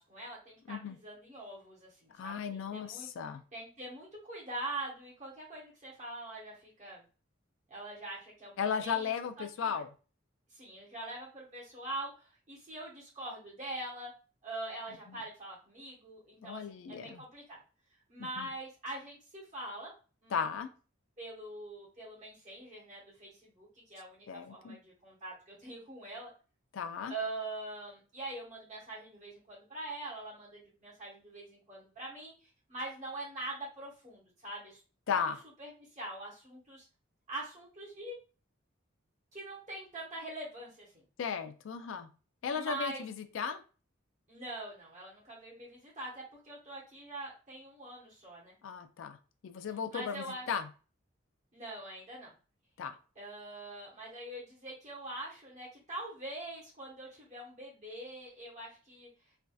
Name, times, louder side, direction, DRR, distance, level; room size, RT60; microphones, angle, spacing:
voice 1, 0.0-3.1 3.5-7.0 7.7-9.1 9.4-9.8 10.5-14.1 14.4-17.6 18.1-19.9 20.2-20.5 21.2-26.3 27.1-34.8 35.1-35.2 35.6-36.9 37.3-38.1 39.3-41.0 42.5-43.0 44.3-48.6 49.9-50.5 51.5-52.3 53.1-59.1, right 2 dB, 35° right, -5 dB, 1.2 m, -43 dB
voice 2, 2.1-3.4 8.6-9.9 16.4-17.2 18.2-18.5 20.3-20.7 24.3-24.8 26.7-27.1 35.1-35.4 41.2-42.1 42.4-43.6 48.6-49.2 49.4-50.7 52.8-53.0, left 6 dB, 75° left, 9 dB, 0.4 m, -35 dB
3.3 x 2.6 x 2.3 m, 0.35 s
head